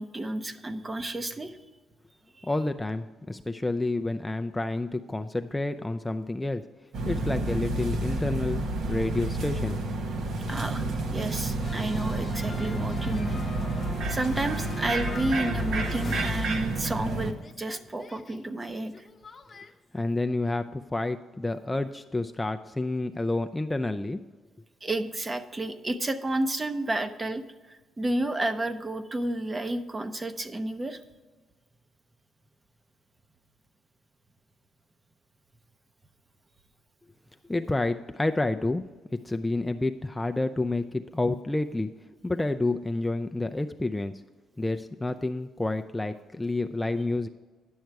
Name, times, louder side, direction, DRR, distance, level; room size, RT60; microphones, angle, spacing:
voice 1, 0.0-1.6 2.4-2.5 10.5-13.4 13.8-19.1 24.8-31.0, right 1 dB, 25° right, 10 dB, 0.7 m, -31 dB
voice 2, 2.4-6.6 7.0-9.8 19.9-24.2 37.5-38.8 39.2-41.9 42.2-44.1 44.6-47.3, left 2 dB, 10° left, 6 dB, 0.4 m, -29 dB
sound 1, 6.9-17.3, right 2 dB, 70° right, 1.0 m, -30 dB
sound 2, 11.6-17.1 17.4-19.7, left 4 dB, 35° left, 0.8 m, -42 dB
10.5 x 6.4 x 4.6 m, 1.3 s
cardioid pair, 90°, 0 cm